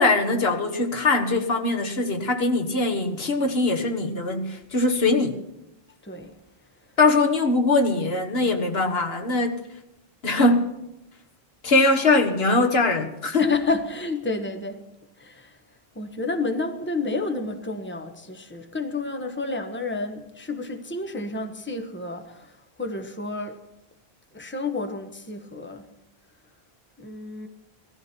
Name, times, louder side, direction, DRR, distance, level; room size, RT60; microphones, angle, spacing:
voice 1, 0.0-5.4 7.0-9.6 10.2-10.7 11.6-13.5, left 2 dB, 70° left, 1.6 m, -22 dB
voice 2, 6.0-6.3 13.4-14.8 15.2-15.6 15.9-23.6 24.3-25.9 27.0-27.5, left 3 dB, 10° left, 1.2 m, -30 dB
18.0 x 14.5 x 4.5 m
omnidirectional pair, 1.1 m